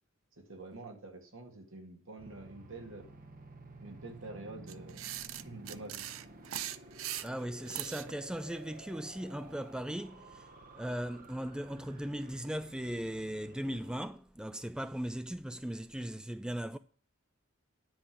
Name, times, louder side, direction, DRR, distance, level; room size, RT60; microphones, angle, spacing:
voice 1, 0.4-3.1 3.8-6.1, right 2 dB, 70° right, 2.1 m, -47 dB
sound 1, 2.2-14.1, right 2 dB, 45° right, 1.2 m, -53 dB
sound 2, 4.7-8.1, right 12 dB, 90° right, 0.6 m, -40 dB
voice 2, 7.2-10.4 10.7-16.8, equal, 5° right, 0.3 m, -38 dB
10.5 x 5.2 x 6.0 m
head